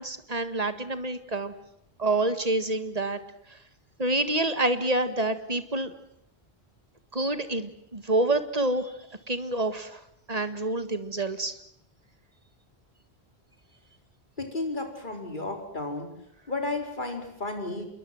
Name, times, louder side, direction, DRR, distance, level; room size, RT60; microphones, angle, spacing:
voice 1, 0.0-1.5 2.0-3.2 3.5-3.6 4.0-5.9 7.1-9.0 9.3-10.0 10.3-11.6, right 2 dB, 35° right, 11 dB, 2.0 m, -27 dB
voice 2, 14.4-16.1 16.5-17.9, left 2 dB, 50° left, 4 dB, 4.8 m, -33 dB
27.0 x 22.0 x 7.8 m, 0.74 s
omnidirectional pair, 1.1 m